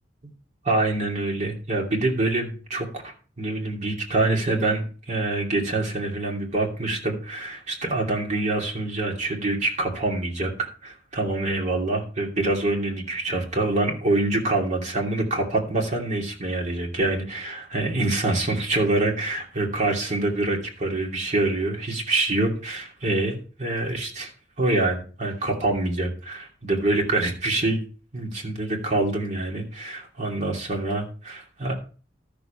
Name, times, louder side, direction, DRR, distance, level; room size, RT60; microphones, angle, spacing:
voice 1, 0.6-24.3 24.6-27.8 28.1-31.7, right 2 dB, 40° right, 0 dB, 2.7 m, -25 dB
13.0 x 7.1 x 4.4 m, 0.38 s
head